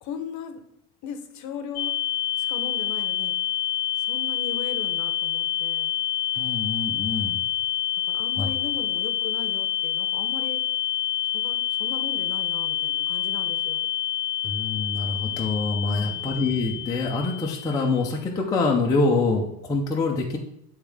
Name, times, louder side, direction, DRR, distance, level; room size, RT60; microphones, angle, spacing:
voice 1, 0.0-0.6 1.0-1.9 2.4-3.3 4.1-5.9 8.1-10.6 11.3-13.9 15.9-16.2, left 7 dB, 45° left, 7 dB, 0.8 m, -38 dB
sound 1, 1.8-18.1, left 11 dB, 85° left, 0.6 m, -27 dB
voice 2, 6.3-7.4 8.4-8.5 14.4-20.4, left 3 dB, 10° left, -1 dB, 0.4 m, -25 dB
9.7 x 3.6 x 3.4 m, 0.74 s
cardioid pair, 155°, 43 cm